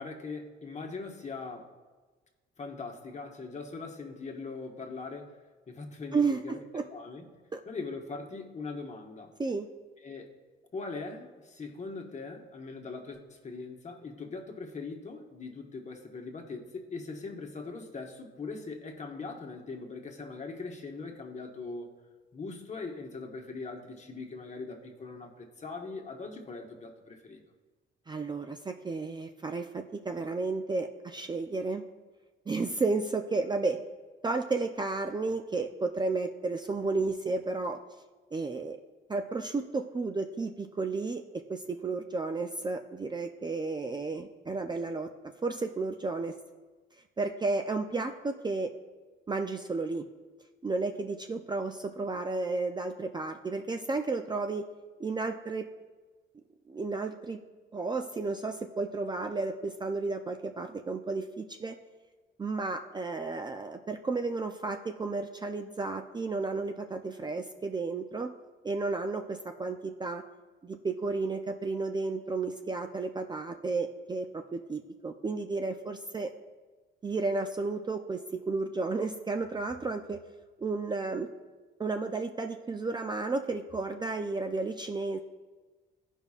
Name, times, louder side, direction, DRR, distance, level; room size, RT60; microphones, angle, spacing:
voice 1, 0.0-1.7 2.6-5.3 5.7-6.6 6.9-7.2 7.7-9.3 10.0-10.3 10.7-21.9 22.3-27.4, left 4 dB, 35° left, 2 dB, 1.3 m, -41 dB
voice 2, 6.1-6.8 7.5-7.6 9.4-9.7 28.1-31.8 32.5-33.8 34.2-37.8 38.3-38.8 39.1-45.1 45.4-46.3 47.2-48.7 49.3-50.0 50.6-54.7 55.0-55.7 56.7-57.4 57.7-61.7 62.4-68.3 68.6-70.2 70.6-76.3 77.0-80.2 80.6-81.3 81.8-85.2, right 3 dB, 20° right, 5 dB, 0.4 m, -32 dB
16.0 x 5.3 x 2.4 m, 1.3 s
cardioid pair, 90°, 20 cm